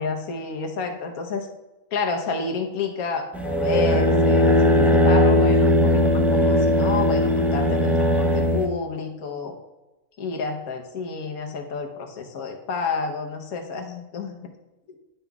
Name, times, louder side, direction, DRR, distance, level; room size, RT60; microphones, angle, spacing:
voice 1, 0.0-1.5 1.9-9.6 10.2-14.5 14.9-15.0, left 4 dB, 85° left, 4 dB, 1.4 m, -30 dB
sound 1, 3.3-8.7, left 1 dB, ahead, 0.3 m, -18 dB
10.0 x 5.6 x 2.3 m, 1.1 s
omnidirectional pair, 1.5 m